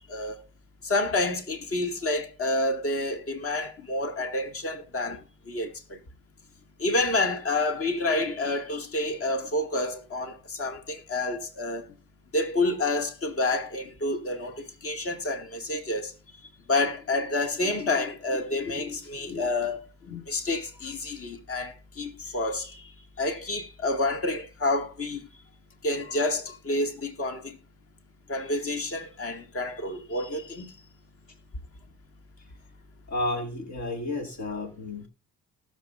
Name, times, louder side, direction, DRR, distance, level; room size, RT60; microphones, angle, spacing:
voice 1, 0.8-6.0 6.8-11.9 12.3-16.1 16.7-22.9 23.2-25.2 25.8-27.6 28.3-30.7, left 2 dB, 50° left, 2.3 m, -29 dB
voice 2, 33.1-35.1, left 2 dB, 65° left, 2.1 m, -32 dB
19.0 x 7.3 x 2.6 m
cardioid pair, 90°, 30 cm